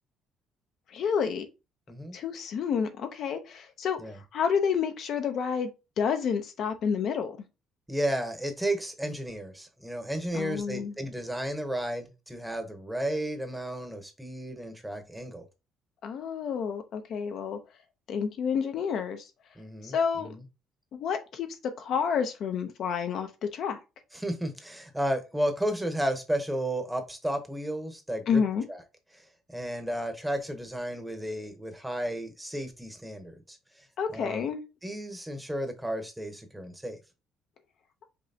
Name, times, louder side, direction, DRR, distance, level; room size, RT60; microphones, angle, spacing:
voice 1, 0.9-1.5 2.1-4.0 4.3-5.7 6.0-7.4 10.3-10.9 16.0-17.6 18.1-19.3 19.8-20.3 20.9-21.5 21.8-23.8 28.3-28.6 34.0-34.6, left 6 dB, 60° left, 0.7 m, -29 dB
voice 2, 7.9-15.5 19.6-20.0 20.3-20.4 24.1-28.4 28.7-28.8 29.1-29.2 29.5-33.6 34.1-34.5 34.8-37.0, right 1 dB, 5° right, 0.9 m, -33 dB
5.4 x 3.1 x 2.8 m
cardioid pair, 115°, 0 cm